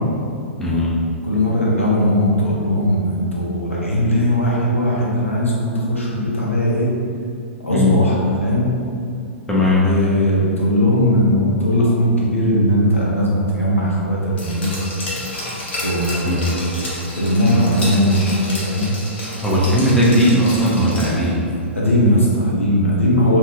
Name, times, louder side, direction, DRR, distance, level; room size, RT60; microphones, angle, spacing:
voice 1, 0.6-0.9 7.7-8.0 9.5-9.9 16.3-16.6 19.4-21.4, equal, 5° left, -7 dB, 0.5 m, -17 dB
voice 2, 1.2-6.9 7.6-8.7 9.7-14.8 15.8-16.8 17.1-18.9 21.7-23.4, equal, 80° left, -5 dB, 0.7 m, -18 dB
Glass, 14.4-21.3 21.6-21.7, left 1 dB, 55° left, 0.9 m, -30 dB
2.6 x 2.3 x 3.3 m, 2.4 s
figure-of-eight pair, 110°, 7 cm